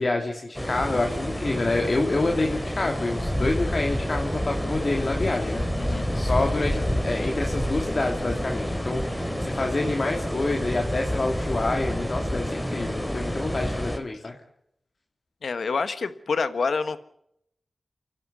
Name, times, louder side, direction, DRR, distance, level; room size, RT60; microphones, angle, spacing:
voice 1, 0.0-14.3, left 2 dB, 60° left, 1 dB, 2.9 m, -27 dB
sound 1, 0.5-14.0, equal, 10° left, 3.2 m, -28 dB
voice 2, 15.4-17.0, left 4 dB, 85° left, 12 dB, 1.3 m, -27 dB
28.0 x 12.0 x 8.3 m, 0.73 s
cardioid pair, 40°, 0 cm